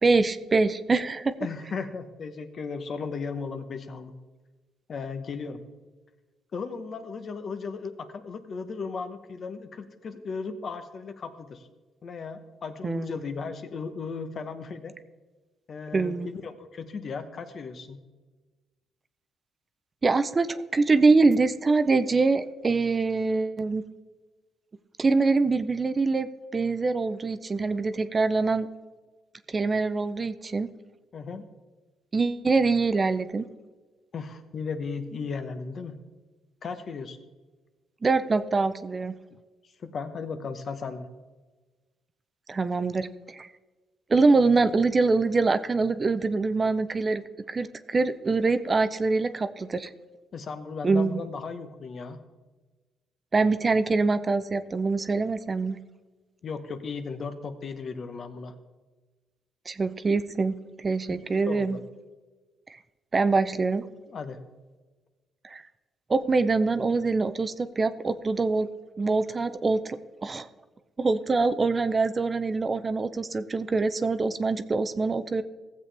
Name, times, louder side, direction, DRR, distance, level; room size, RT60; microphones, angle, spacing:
voice 1, 0.0-1.3 12.8-13.1 15.9-16.3 20.0-23.8 25.0-28.7 29.5-30.7 32.1-33.5 38.0-39.2 42.5-43.5 44.1-47.2 47.5-49.9 50.8-51.2 53.3-55.8 59.7-61.8 63.1-63.9 65.4-65.6 66.1-68.7 69.0-70.0 70.2-70.5 71.0-75.4, right 3 dB, 30° right, 11 dB, 0.5 m, -24 dB
voice 2, 1.4-4.1 4.9-5.6 6.5-11.7 12.0-14.9 15.7-18.0 31.1-31.4 34.1-36.0 36.6-37.2 39.8-41.1 50.3-52.2 56.4-58.5 61.5-61.8 64.1-64.4, left 5 dB, 50° left, 9 dB, 1.0 m, -36 dB
16.0 x 7.6 x 3.4 m, 1.3 s
cardioid pair, 90°, 0 cm